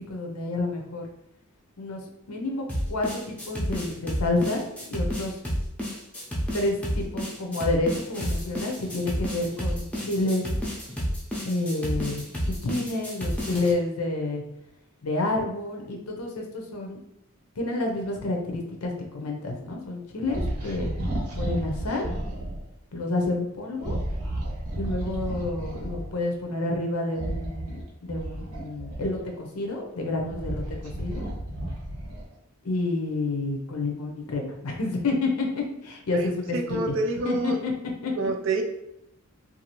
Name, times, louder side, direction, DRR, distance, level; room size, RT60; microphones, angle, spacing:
voice 1, 0.1-1.1 1.8-2.0 2.3-4.6 4.9-5.3 6.5-10.5 11.4-12.3 12.6-14.4 15.0-17.0 17.6-20.9 21.3-22.1 22.9-24.0 24.8-31.2 32.6-37.0 37.2-37.7 38.0-38.1, left 2 dB, 80° left, 1 dB, 0.6 m, -29 dB
sound 1, 2.7-13.7, equal, 5° left, 0.5 m, -30 dB
sound 2, 20.3-22.6 23.8-26.1 27.1-29.4 30.0-32.3, right 1 dB, 80° right, 0.9 m, -32 dB
voice 2, 36.1-37.6 38.2-38.6, right 3 dB, 55° right, 3 dB, 0.4 m, -28 dB
2.7 x 2.4 x 2.9 m, 0.81 s
head